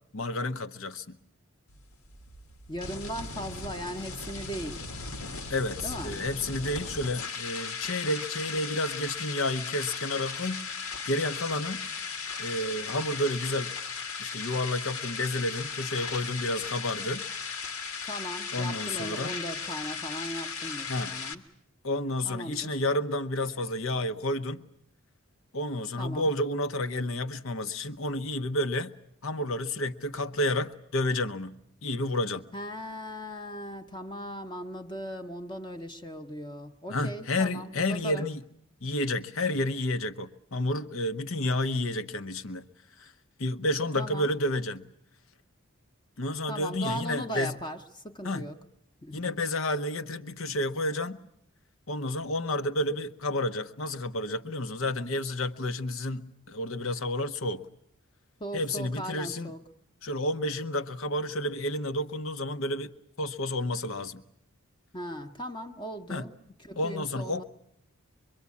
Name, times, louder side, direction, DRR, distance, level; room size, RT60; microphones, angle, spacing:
voice 1, 0.1-1.2 5.5-11.9 12.4-13.7 14.2-17.2 18.5-19.4 20.9-21.1 21.8-24.6 25.5-28.9 29.2-31.6 31.8-32.4 36.9-38.4 38.8-42.6 43.0-43.1 43.4-44.8 46.2-47.5 48.2-48.5 49.1-51.2 51.9-57.7 58.5-59.5 60.0-62.9 63.2-64.2 66.1-66.2 66.8-67.4, left 1 dB, 65° left, 1.0 m, -30 dB
sound 1, 1.7-21.3, left 5 dB, 80° left, 1.7 m, -37 dB
voice 2, 2.7-4.8 5.8-6.2 18.0-21.4 22.2-22.8 26.0-26.3 32.5-38.3 44.0-44.3 46.5-48.6 49.0-49.4 58.4-59.6 64.9-66.3 66.6-67.4, equal, 20° left, 1.0 m, -38 dB
24.5 x 23.5 x 8.5 m
head